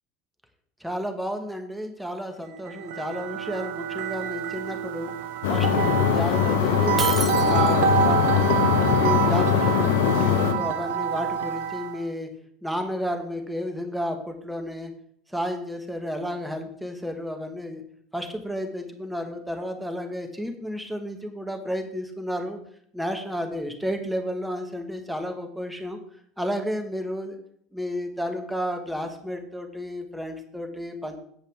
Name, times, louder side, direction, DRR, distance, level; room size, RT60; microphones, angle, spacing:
voice 1, 0.8-5.1 5.5-7.1 7.4-12.3 12.6-14.9 15.3-17.8 18.1-22.6 22.9-26.0 26.4-27.4 27.7-31.2, equal, 5° right, 5 dB, 2.0 m, -32 dB
sound 1, 2.6-12.0, right 8 dB, 80° right, 0.9 m, -27 dB
sound 2, 5.4-10.5, left 9 dB, 85° left, 0.9 m, -22 dB
Shatter, 7.0-8.0, right 4 dB, 30° right, 1.5 m, -31 dB
16.5 x 5.6 x 3.8 m, 0.65 s
supercardioid pair, 90°, 0 cm